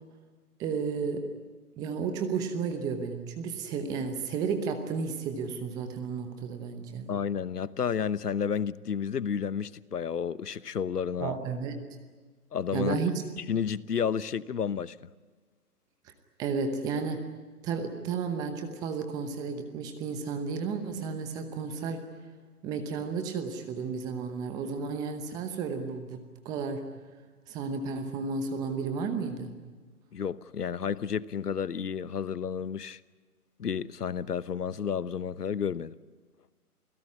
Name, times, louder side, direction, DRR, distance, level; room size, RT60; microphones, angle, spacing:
voice 1, 0.6-1.3 1.8-7.1 11.2-11.8 12.7-13.1 16.4-17.2 17.6-22.0 22.6-26.8 27.5-29.5, right 5 dB, 10° right, 0.9 m, -32 dB
voice 2, 7.1-11.4 12.5-13.0 13.4-15.0 30.1-33.0 33.6-35.9, left 7 dB, 80° left, 1.1 m, -31 dB
28.0 x 17.0 x 9.7 m
hypercardioid pair, 150°, 46 cm